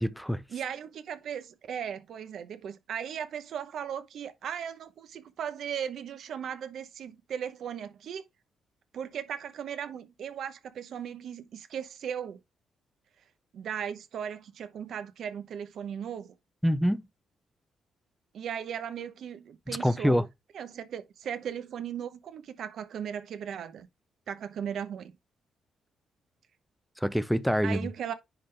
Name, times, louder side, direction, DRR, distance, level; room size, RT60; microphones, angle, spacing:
voice 1, 0.0-0.4 16.6-17.1 19.7-20.3 27.0-27.9, equal, ahead, 0.4 m, -26 dB
voice 2, 0.5-8.2 8.9-12.4 13.5-16.3 18.3-20.2 20.5-23.9 24.3-25.1 27.6-28.1, right 8 dB, 55° right, 0.9 m, -37 dB
10.0 x 3.9 x 3.3 m
cardioid pair, 175°, 0 cm